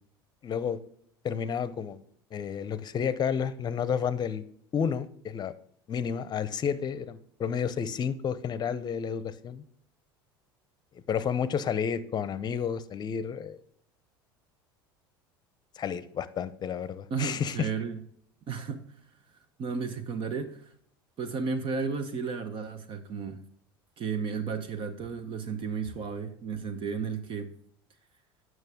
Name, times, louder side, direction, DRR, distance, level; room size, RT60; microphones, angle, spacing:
voice 1, 0.4-0.8 1.2-2.0 2.3-4.4 4.7-5.5 5.9-9.6 11.1-13.6 15.8-17.7, left 7 dB, 35° left, 15 dB, 0.7 m, -31 dB
voice 2, 17.1-18.0 18.5-18.9 19.6-20.7 21.2-23.4 24.0-27.5, right 5 dB, 45° right, 10 dB, 1.0 m, -33 dB
9.1 x 6.2 x 3.6 m, 0.65 s
hypercardioid pair, 80°, 12 cm